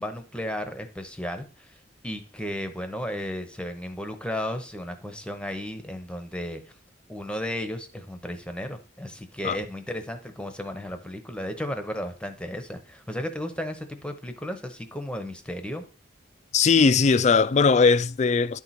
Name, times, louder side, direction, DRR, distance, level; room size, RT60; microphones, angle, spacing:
voice 1, 0.0-1.8 2.0-6.6 7.1-15.8, equal, 5° left, 0.8 m, -34 dB
voice 2, 16.5-18.6, left 5 dB, 40° left, 0.3 m, -19 dB
11.0 x 4.5 x 4.2 m
head